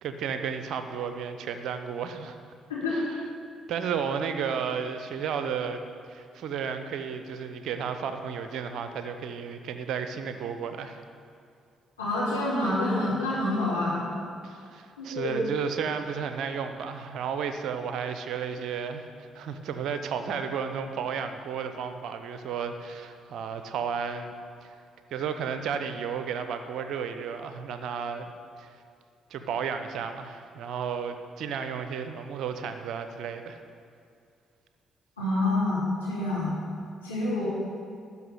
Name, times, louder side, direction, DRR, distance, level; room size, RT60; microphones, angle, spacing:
voice 1, 0.0-2.4 2.9-3.2 3.7-5.8 6.1-11.0 14.4-24.3 24.6-24.7 25.1-28.3 28.6-28.7 29.3-33.6, right 6 dB, 60° right, 8 dB, 0.8 m, -33 dB
voice 2, 12.0-14.0 15.0-15.4 35.2-36.5 37.0-37.4, left 2 dB, 90° left, -11 dB, 3.4 m, -27 dB
12.5 x 5.9 x 9.0 m, 2.3 s
figure-of-eight pair, 45°, 0 cm